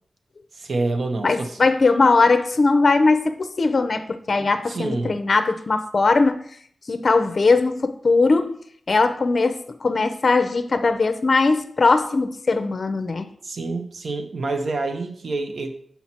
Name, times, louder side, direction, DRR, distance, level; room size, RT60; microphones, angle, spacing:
voice 1, 0.5-1.6 4.7-5.2 13.4-15.7, right 3 dB, 70° right, 6 dB, 0.9 m, -27 dB
voice 2, 1.2-6.5 6.9-8.6 8.9-13.3, left 3 dB, 50° left, 9 dB, 0.5 m, -20 dB
6.0 x 5.7 x 4.2 m, 0.62 s
wide cardioid pair, 110°, 0 cm